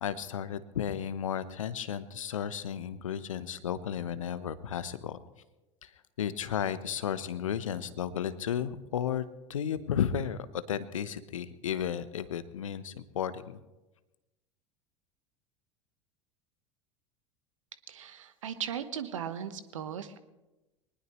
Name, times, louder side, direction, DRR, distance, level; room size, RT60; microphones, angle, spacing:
voice 1, 0.0-5.2 5.8-5.9 6.2-13.6, left 8 dB, 75° left, 14 dB, 1.0 m, -33 dB
voice 2, 17.9-20.2, right 8 dB, 70° right, 12 dB, 1.2 m, -37 dB
22.5 x 19.5 x 3.2 m, 1.0 s
figure-of-eight pair, 80°, 17 cm